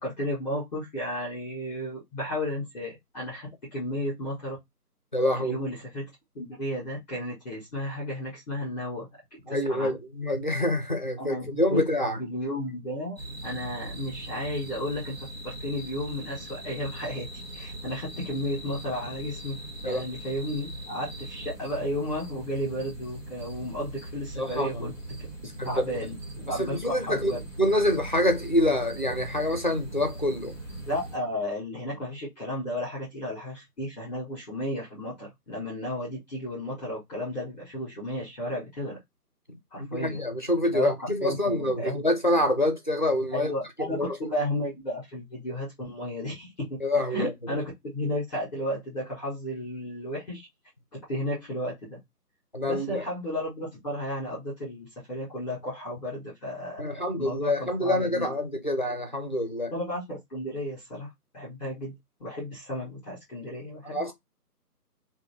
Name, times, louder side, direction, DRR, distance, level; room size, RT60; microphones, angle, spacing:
voice 1, 0.0-4.6 5.4-6.1 6.3-9.1 9.5-9.9 11.2-11.8 12.2-13.2 13.4-15.1 15.4-24.9 25.6-27.4 30.9-39.0 39.7-40.2 40.7-42.0 43.3-46.7 47.1-50.5 51.1-52.0 52.6-58.3 59.7-61.1 61.3-61.9 62.2-64.1, left 1 dB, 5° left, 1.5 m, -33 dB
voice 2, 5.1-5.6 9.5-12.2 19.8-20.0 24.3-24.9 25.6-25.8 26.6-30.5 39.8-43.5 43.8-44.2 46.8-47.3 52.5-53.0 56.8-59.7 63.8-64.1, left 1 dB, 30° left, 0.5 m, -26 dB
sound 1, 13.2-31.2, right 1 dB, 15° right, 1.0 m, -40 dB
3.4 x 2.6 x 3.3 m
figure-of-eight pair, 155°, 48 cm